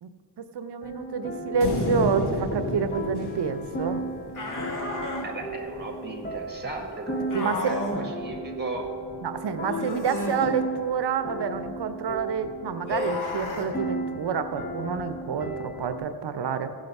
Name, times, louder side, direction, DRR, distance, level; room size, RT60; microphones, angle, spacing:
voice 1, 0.4-4.0 7.3-7.7 9.2-16.7, right 6 dB, 85° right, 10 dB, 0.7 m, -28 dB
sound 1, 0.8-16.0, equal, 25° left, 0.8 m, -35 dB
sound 2, 1.6-5.0, left 1 dB, 75° left, 1.6 m, -31 dB
sound 3, 4.3-5.3 7.3-8.0 9.7-10.5 12.9-13.7, left 2 dB, 50° left, 2.0 m, -32 dB
voice 2, 5.2-9.0, right 2 dB, 25° right, 3 dB, 1.6 m, -35 dB
16.0 x 5.3 x 5.3 m, 2.4 s
wide cardioid pair, 85°, 39 cm